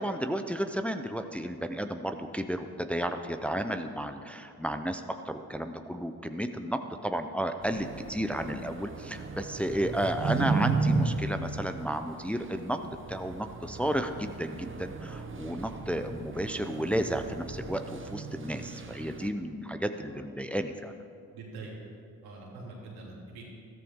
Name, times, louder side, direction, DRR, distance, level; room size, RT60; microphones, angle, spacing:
voice 1, 0.0-12.8 13.1-21.0, equal, 5° left, 7 dB, 0.7 m, -32 dB
sound 1, 7.6-19.3, right 4 dB, 30° right, 1.1 m, -35 dB
voice 2, 21.3-21.7 22.2-23.4, right 3 dB, 80° right, -3 dB, 2.9 m, -44 dB
13.5 x 13.5 x 3.7 m, 2.4 s
supercardioid pair, 55°, 38 cm